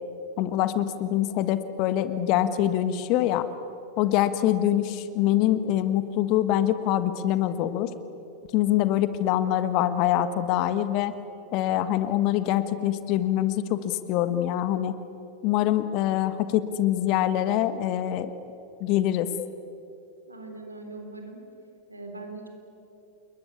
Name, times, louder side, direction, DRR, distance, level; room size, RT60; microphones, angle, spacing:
voice 1, 0.4-3.5 4.0-7.9 8.5-11.1 11.5-15.0 15.4-18.3 18.8-19.3, left 12 dB, 40° left, 12 dB, 1.4 m, -24 dB
voice 2, 20.3-21.4 21.9-22.5, right 2 dB, 80° right, 4 dB, 3.8 m, -40 dB
28.5 x 22.0 x 8.6 m, 3.0 s
figure-of-eight pair, 90°, 0 cm